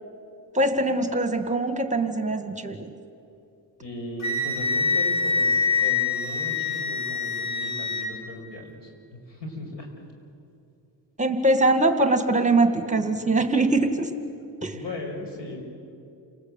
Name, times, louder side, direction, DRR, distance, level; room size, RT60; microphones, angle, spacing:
voice 1, 0.5-2.9 11.2-14.2 14.6-14.8, right 2 dB, 15° right, 7 dB, 1.9 m, -22 dB
voice 2, 3.8-9.9 14.7-15.6, left 1 dB, 80° left, 2 dB, 6.4 m, -37 dB
Wind instrument woodwind instrument, 4.2-8.1, left 4 dB, 50° left, 5.0 m, -25 dB
29.0 x 19.5 x 9.0 m, 2.6 s
cardioid pair, 110°, 42 cm